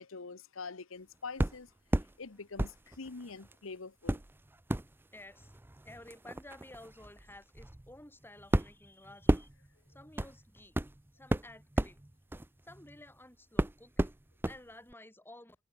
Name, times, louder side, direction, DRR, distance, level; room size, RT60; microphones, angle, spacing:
voice 1, 0.0-1.7 2.2-4.2, left 4 dB, 75° left, 1.0 m, -45 dB
sound 1, 1.4-2.1 2.6-3.5 4.0-13.1 13.6-14.6 14.9-15.0, right 1 dB, 10° right, 0.5 m, -34 dB
voice 2, 5.1-5.5 5.8-9.5 9.9-10.7 11.1-12.0 12.6-14.1 14.5-15.6, left 1 dB, 10° left, 4.5 m, -53 dB
head